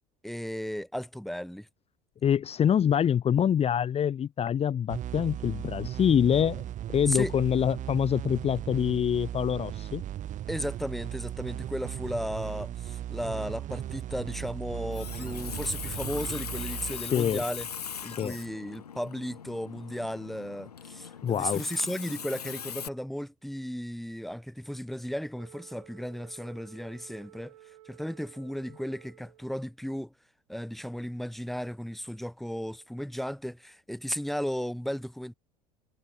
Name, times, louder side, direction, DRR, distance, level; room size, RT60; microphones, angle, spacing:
voice 1, 0.2-1.7 7.1-7.3 10.5-17.7 18.0-27.5 27.8-30.1 30.5-35.3, equal, ahead, 3.5 m, -35 dB
voice 2, 2.2-6.6 6.9-10.0 17.1-17.4 18.2-18.4 21.2-21.6, left 9 dB, 30° left, 1.9 m, -25 dB
sound 1, 4.9-18.2, right 12 dB, 40° right, 3.0 m, -37 dB
Water tap faucet, 14.7-22.9, left 7 dB, 75° left, 4.1 m, -40 dB
Wind instrument woodwind instrument, 25.3-29.7, right 15 dB, 65° right, 5.1 m, -54 dB
figure-of-eight pair, 70°, 20 cm